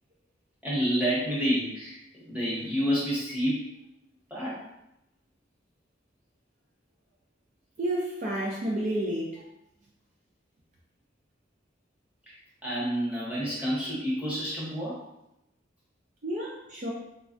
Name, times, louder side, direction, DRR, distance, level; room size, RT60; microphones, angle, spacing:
voice 1, 0.6-3.8 4.3-4.6 12.3-15.0, equal, 10° right, -7 dB, 1.0 m, -29 dB
voice 2, 7.8-9.4 16.2-16.9, right 1 dB, 45° right, -3 dB, 0.4 m, -30 dB
3.2 x 2.3 x 2.5 m, 0.85 s
head